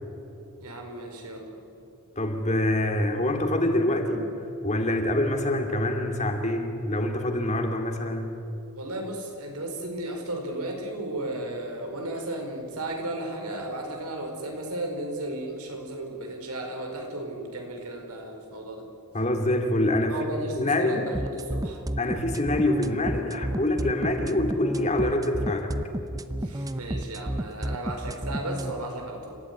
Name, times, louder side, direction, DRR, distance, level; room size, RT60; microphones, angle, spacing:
voice 1, 0.6-1.5 8.8-18.9 20.1-21.8 26.4-29.4, right 1 dB, 85° right, 3 dB, 4.9 m, -34 dB
voice 2, 2.2-4.3 4.6-8.4 19.1-20.2 20.6-21.0 22.0-25.7, left 1 dB, 30° left, 4 dB, 2.5 m, -25 dB
sound 1, 21.1-28.7, right 1 dB, 15° right, 0.7 m, -31 dB
30.0 x 15.5 x 9.6 m, 2.9 s
head